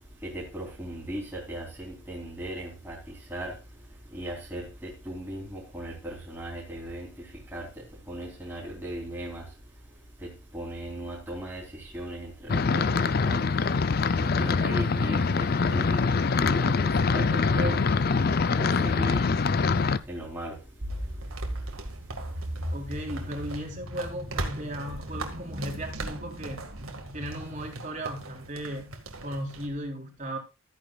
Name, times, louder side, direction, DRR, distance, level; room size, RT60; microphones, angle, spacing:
voice 1, 0.2-3.0 3.3-3.6 4.1-9.5 10.2-13.5 14.2-16.1 16.4-17.8 18.6-19.3 20.1-20.6, right 1 dB, 10° right, 3.6 m, -37 dB
sound 1, 12.5-20.0, left 4 dB, 45° left, 0.5 m, -24 dB
sound 2, 20.8-27.7, equal, 60° right, 2.8 m, -38 dB
sound 3, 20.9-29.7, right 3 dB, 90° right, 1.8 m, -40 dB
voice 2, 22.7-26.7 27.1-28.9 29.2-30.4, equal, 35° right, 3.5 m, -36 dB
13.5 x 9.3 x 2.4 m
head